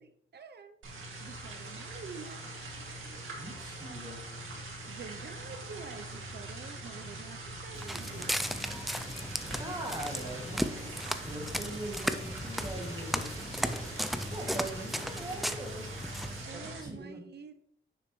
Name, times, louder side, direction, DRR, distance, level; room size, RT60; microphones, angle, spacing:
voice 1, 0.3-0.8 1.2-2.4 4.8-8.4 16.4-17.5, right 5 dB, 50° right, 8 dB, 0.6 m, -47 dB
sound 1, 0.8-16.8, right 2 dB, 70° right, 2.2 m, -43 dB
voice 2, 3.4-4.3 9.5-13.8 14.3-15.9 16.5-17.2, right 1 dB, 20° right, 0 dB, 2.2 m, -41 dB
Walk footsteps, 7.8-16.4, equal, ahead, 0.4 m, -36 dB
sound 2, 8.0-15.4, left 2 dB, 30° left, 1.3 m, -49 dB
9.3 x 6.9 x 3.1 m, 0.68 s
wide cardioid pair, 155°, 21 cm